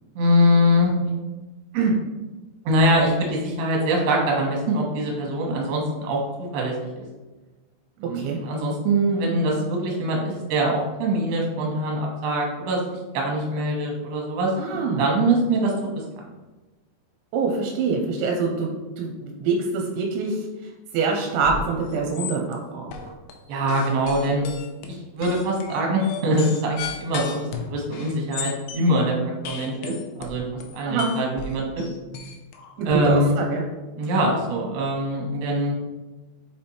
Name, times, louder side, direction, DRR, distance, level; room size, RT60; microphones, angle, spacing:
voice 1, 0.2-1.1 1.7-1.9 2.7-7.1 8.0-15.7 23.5-24.4 24.9-29.2 29.4-30.4 30.7-31.7 32.8-33.4 34.0-35.7, right 1 dB, 70° right, -1 dB, 3.0 m, -23 dB
voice 2, 14.6-15.0 17.3-20.4 20.9-23.1 30.9-31.1 32.8-33.6, right 4 dB, 85° right, 1 dB, 3.0 m, -25 dB
sound 1, 21.4-21.7 21.9-22.5 22.9-23.3 23.7-28.9 29.5-33.0, left 6 dB, 80° left, 2.4 m, -35 dB
7.1 x 3.4 x 4.2 m, 1.2 s
omnidirectional pair, 5.3 m